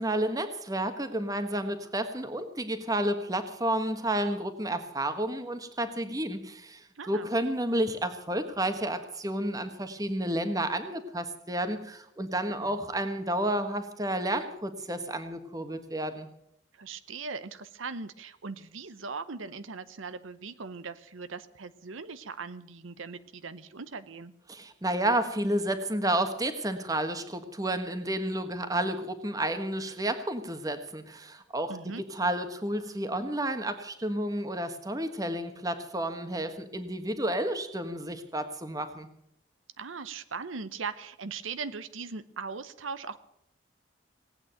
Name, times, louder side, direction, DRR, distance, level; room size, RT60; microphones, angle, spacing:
voice 1, 0.0-16.3 24.5-31.8 32.1-39.1, right 1 dB, 20° right, 8 dB, 1.4 m, -31 dB
voice 2, 7.0-7.3 12.6-12.8 16.7-24.3 31.7-32.0 39.8-43.2, right 4 dB, 85° right, 12 dB, 0.8 m, -39 dB
18.5 x 8.8 x 8.9 m, 0.77 s
head